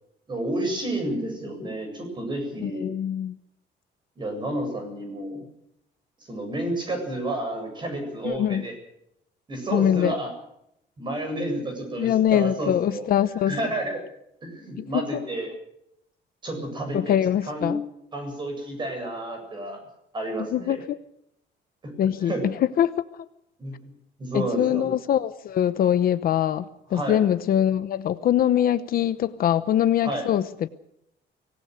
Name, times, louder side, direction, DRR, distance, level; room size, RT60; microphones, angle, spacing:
voice 1, 0.3-2.9 4.2-5.5 6.2-8.7 9.5-10.3 11.0-13.1 13.4-14.0 14.4-15.5 16.4-17.8 18.1-19.8 20.1-20.8 21.8-22.5 23.6-23.8 24.2-24.9 26.9-27.2 30.0-30.3, right 1 dB, 25° right, 5 dB, 7.9 m, -30 dB
voice 2, 2.6-3.4 8.2-8.6 9.7-10.1 12.0-13.6 14.8-14.9 16.9-17.8 20.5-20.8 22.0-22.3 22.8-23.0 24.3-26.6 26.9-30.7, left 10 dB, 50° left, 13 dB, 0.9 m, -23 dB
24.5 x 19.0 x 6.5 m, 0.79 s
cardioid pair, 175°, 19 cm